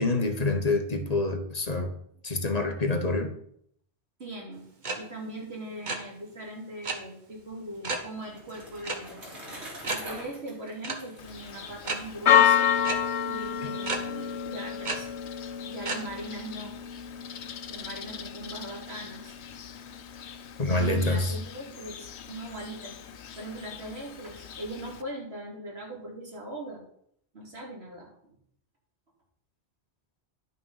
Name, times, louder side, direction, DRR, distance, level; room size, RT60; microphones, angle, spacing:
voice 1, 0.0-1.9 2.2-3.3 13.6-13.7 20.6-21.3, left 2 dB, 40° left, 6 dB, 1.1 m, -26 dB
voice 2, 4.2-4.6 4.9-9.3 9.8-12.7 13.2-15.1 15.6-16.7 17.7-19.3 20.7-23.0 23.4-26.8 27.3-28.3, right 1 dB, 70° right, -2 dB, 3.1 m, -40 dB
sound 1, 4.8-5.0 5.2-5.4 5.7-6.0 6.8-7.0 7.8-8.1 8.8-9.0 9.3-9.4 9.8-10.0 10.8-11.0 11.8-12.0 12.8-12.9 13.8-14.0 14.8-15.0 15.8-16.0, right 3 dB, 45° right, 1.3 m, -31 dB
Bicycle, 7.7-12.5, equal, 90° right, 3.4 m, -45 dB
Church bell, 11.2-25.0, left 9 dB, 85° left, 1.0 m, -30 dB
11.0 x 6.2 x 5.5 m, 0.69 s
omnidirectional pair, 1.1 m